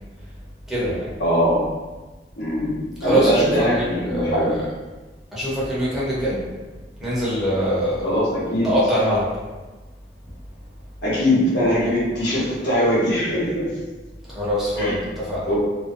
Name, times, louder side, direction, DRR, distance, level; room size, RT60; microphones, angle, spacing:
voice 1, 0.7-1.1 3.0-4.6 5.3-6.5 7.0-8.2 8.6-9.4 14.3-15.5, equal, ahead, -9 dB, 0.7 m, -23 dB
voice 2, 1.2-1.7 2.4-4.5 8.0-8.7 11.0-13.7 14.8-15.0 15.5-15.6, equal, 80° left, -7 dB, 0.9 m, -21 dB
2.5 x 2.1 x 2.5 m, 1.2 s
head